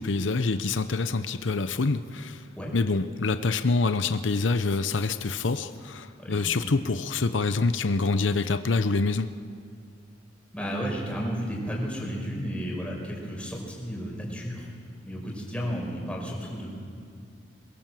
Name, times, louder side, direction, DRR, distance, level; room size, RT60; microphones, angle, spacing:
voice 1, 0.0-2.5 2.7-9.3, left 3 dB, 90° left, 0.8 m, -26 dB
voice 2, 6.2-6.8 10.5-14.7 15.1-16.7, equal, 5° left, 5.4 m, -33 dB
22.5 x 22.0 x 7.6 m
head